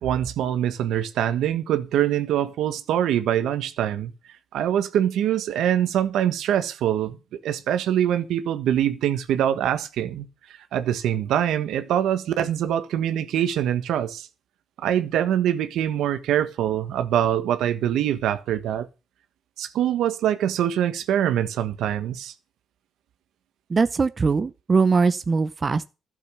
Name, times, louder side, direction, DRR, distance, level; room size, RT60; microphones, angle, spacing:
voice 1, 0.0-4.1 4.5-7.2 7.4-10.2 10.7-14.3 14.8-18.9 19.6-22.3, right 10 dB, 80° right, 1.5 m, -24 dB
voice 2, 23.7-25.9, right 4 dB, 35° right, 0.7 m, -21 dB
12.0 x 7.2 x 6.9 m
cardioid pair, 90°, 0 cm